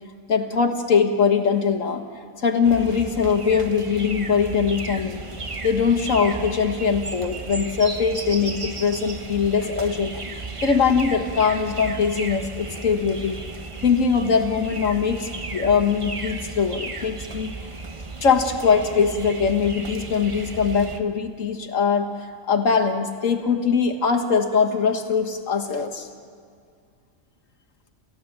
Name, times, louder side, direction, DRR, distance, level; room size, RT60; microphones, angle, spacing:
voice 1, 0.3-2.0 2.4-5.2 5.6-10.3 10.6-13.4 13.8-17.5 18.2-22.1 22.5-26.1, left 6 dB, 85° left, 5 dB, 1.9 m, -21 dB
sound 1, 2.6-21.0, right 3 dB, 25° right, 1.0 m, -35 dB
28.5 x 15.5 x 7.6 m, 2.1 s
omnidirectional pair, 1.3 m